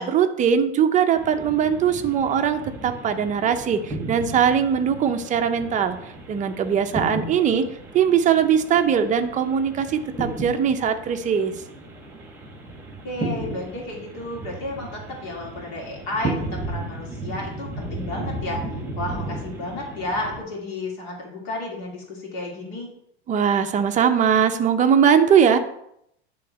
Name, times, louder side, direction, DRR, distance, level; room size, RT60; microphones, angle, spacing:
voice 1, 0.0-6.0 6.3-7.7 7.9-11.5 23.3-25.6, right 7 dB, 25° right, 6 dB, 0.7 m, -20 dB
sound 1, 1.1-20.4, right 2 dB, 5° right, 1.8 m, -35 dB
voice 2, 13.0-18.6 19.0-22.9, left 1 dB, 55° left, -2 dB, 3.0 m, -32 dB
10.5 x 3.9 x 4.3 m, 0.76 s
supercardioid pair, 125°, 33 cm